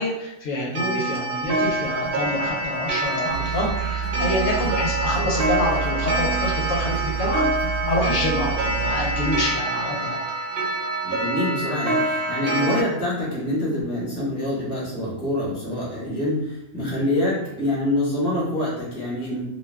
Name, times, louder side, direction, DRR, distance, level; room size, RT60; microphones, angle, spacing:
voice 1, 0.0-7.4 7.9-10.2, left 1 dB, 75° left, -2 dB, 0.9 m, -26 dB
Clock, 0.7-12.8, right 2 dB, 60° right, 0.6 m, -26 dB
sound 1, 1.4-9.3, right 1 dB, 45° left, 0.7 m, -37 dB
sound 2, 3.3-9.4, right 8 dB, 75° right, 1.0 m, -29 dB
voice 2, 11.0-19.4, left 1 dB, 20° left, -7 dB, 1.1 m, -25 dB
2.5 x 2.2 x 3.3 m, 0.87 s
omnidirectional pair, 1.4 m